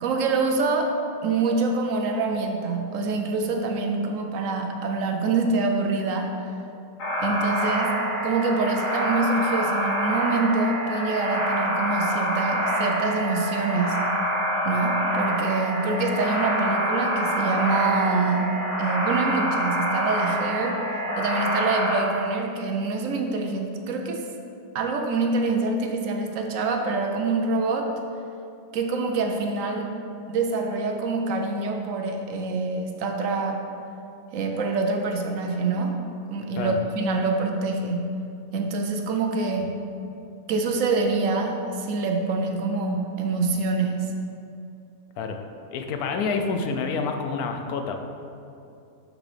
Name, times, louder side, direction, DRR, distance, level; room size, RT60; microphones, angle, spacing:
voice 1, 0.0-6.5 7.2-7.9 8.2-14.0 14.6-18.5 18.8-20.8 21.2-24.2 24.7-27.9 28.7-29.9 30.3-33.6 34.3-36.0 36.3-38.1 38.5-39.8 40.5-44.1, right 3 dB, 70° right, 3 dB, 0.9 m, -25 dB
sound 1, 7.0-22.0, equal, 65° left, 1.9 m, -26 dB
voice 2, 45.7-48.0, left 4 dB, 85° left, 5 dB, 1.1 m, -28 dB
6.2 x 6.1 x 3.2 m, 2.6 s
omnidirectional pair, 1.5 m